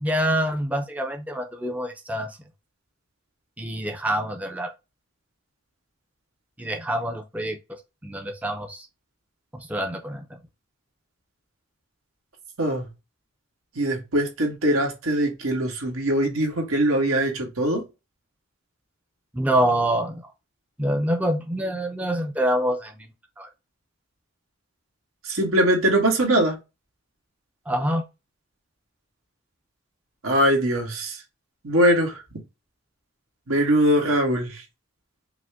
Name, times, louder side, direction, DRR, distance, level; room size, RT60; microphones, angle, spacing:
voice 1, 0.0-2.4 3.6-4.7 6.6-7.6 8.0-8.9 9.5-10.2 19.3-20.2 20.8-23.1 23.4-23.5 27.7-28.0, right 1 dB, 5° right, 0.5 m, -26 dB
voice 2, 13.7-17.8 25.2-26.5 30.2-31.2 31.6-32.2 33.5-34.6, right 1 dB, 90° right, 1.5 m, -22 dB
5.0 x 2.1 x 3.5 m
head